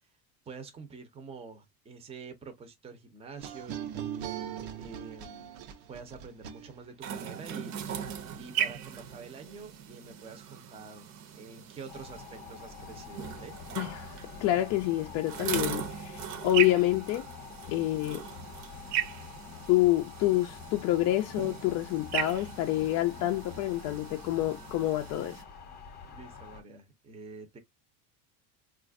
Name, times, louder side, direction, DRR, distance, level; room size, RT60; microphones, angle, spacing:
voice 1, 0.5-5.6 5.9-13.6 26.1-27.6, right 4 dB, 15° right, 0.6 m, -47 dB
sound 1, 3.4-7.1, right 10 dB, 85° right, 0.8 m, -40 dB
sound 2, 7.0-25.4, right 9 dB, 55° right, 0.8 m, -38 dB
sound 3, 11.9-26.6, left 6 dB, 25° left, 0.9 m, -47 dB
voice 2, 13.8-17.2 17.7-18.2 19.7-25.4, left 15 dB, 50° left, 0.4 m, -28 dB
4.0 x 2.4 x 2.4 m
cardioid pair, 150°, 35 cm